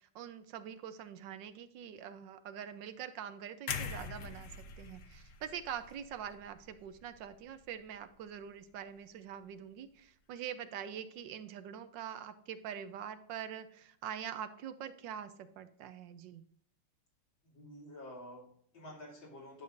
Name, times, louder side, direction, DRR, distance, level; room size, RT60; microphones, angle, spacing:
voice 1, 0.0-4.5 4.8-16.4, right 9 dB, 75° right, 11 dB, 1.3 m, -44 dB
sound 1, 3.7-7.7 8.1-8.3, left 6 dB, 55° left, 0.9 m, -44 dB
voice 2, 17.4-19.6, left 1 dB, 85° left, -4 dB, 3.5 m, -50 dB
10.5 x 6.9 x 2.5 m, 0.66 s
omnidirectional pair, 2.0 m